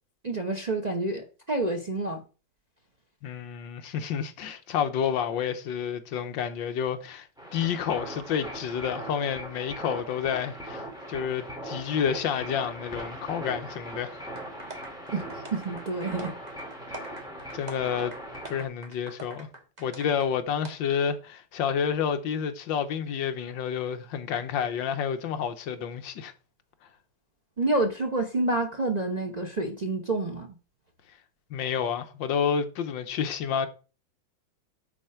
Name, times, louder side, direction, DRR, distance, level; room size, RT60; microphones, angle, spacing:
voice 1, 0.2-2.2 15.1-16.3 27.6-30.5, right 2 dB, 75° right, 0.3 m, -28 dB
voice 2, 3.2-14.2 17.5-18.1 18.5-19.5 19.8-26.3 31.5-33.7, left 7 dB, 70° left, 1.5 m, -29 dB
sound 1, 7.4-18.7, right 1 dB, ahead, 2.1 m, -40 dB
sound 2, 14.3-20.3 20.6-20.7, right 2 dB, 25° right, 1.4 m, -45 dB
8.9 x 4.3 x 5.8 m
omnidirectional pair, 2.2 m